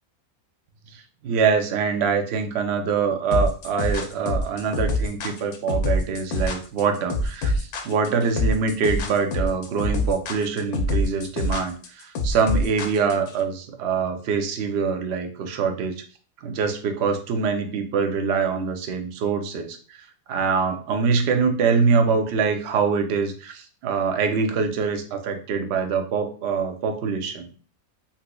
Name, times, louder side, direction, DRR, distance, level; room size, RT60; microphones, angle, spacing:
voice 1, 0.9-16.0 16.4-27.5, right 5 dB, 65° right, 6 dB, 0.7 m, -24 dB
sound 1, 3.3-13.3, left 1 dB, 90° left, 1.1 m, -25 dB
4.0 x 2.7 x 2.2 m, 0.40 s
omnidirectional pair, 1.5 m